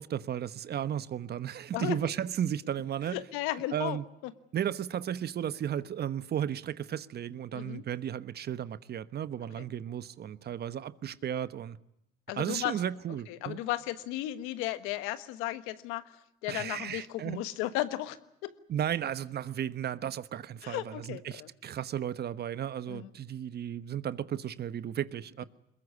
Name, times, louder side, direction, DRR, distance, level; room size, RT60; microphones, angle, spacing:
voice 1, 0.0-3.2 3.7-4.0 4.5-11.8 12.4-13.6 16.5-17.4 18.7-25.4, right 10 dB, 50° right, 1.1 m, -34 dB
voice 2, 3.1-4.0 4.2-4.3 7.5-7.8 9.6-9.7 12.3-12.7 13.3-16.1 16.4-18.2 18.4-18.5 20.6-21.5 22.9-23.1, left 15 dB, 85° left, 1.5 m, -34 dB
22.0 x 21.0 x 9.7 m
supercardioid pair, 75°, 21 cm